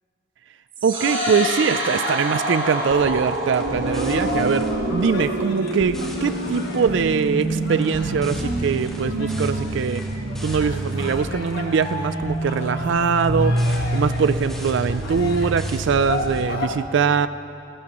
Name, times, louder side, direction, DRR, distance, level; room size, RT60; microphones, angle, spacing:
sound 1, 0.7-16.7, right 2 dB, 80° right, 3.2 m, -27 dB
voice 1, 0.8-10.0 10.4-13.6 13.9-17.3, right 6 dB, 60° right, 13 dB, 0.4 m, -22 dB
sound 2, 0.9-16.7, left 3 dB, 50° left, 1.5 m, -33 dB
sound 3, 2.8-11.9 12.2-16.4, equal, ahead, 1.7 m, -35 dB
29.5 x 12.0 x 3.0 m, 2.6 s
head